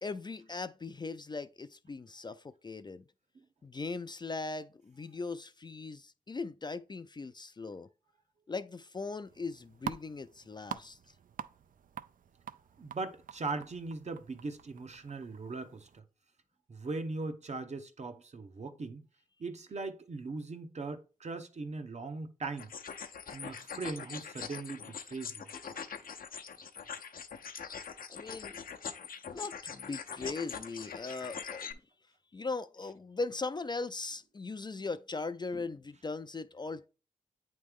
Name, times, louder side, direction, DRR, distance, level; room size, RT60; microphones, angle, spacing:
voice 1, 0.0-3.0 3.6-7.9 8.5-11.0 28.1-28.6 29.3-31.8 32.3-36.9, left 3 dB, 30° left, 0.3 m, -39 dB
sound 1, 9.3-16.0, right 8 dB, 70° right, 0.4 m, -46 dB
voice 2, 12.8-16.0 16.7-19.0 19.4-22.7 23.3-25.4, right 3 dB, 50° right, 0.9 m, -39 dB
sound 2, 22.6-31.7, left 6 dB, 80° left, 0.6 m, -43 dB
9.0 x 3.2 x 3.5 m
wide cardioid pair, 90°, 15 cm